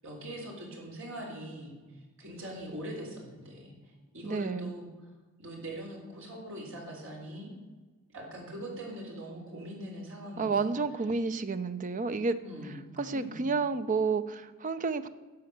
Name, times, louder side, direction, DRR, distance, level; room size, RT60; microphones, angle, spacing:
voice 1, 0.0-4.9 5.4-7.5 8.1-10.8 12.4-13.6, equal, 60° right, -1 dB, 3.6 m, -42 dB
voice 2, 4.2-4.7 10.4-12.4 12.6-15.1, right 4 dB, 35° right, 12 dB, 0.6 m, -30 dB
11.5 x 7.6 x 6.7 m, 1.3 s
head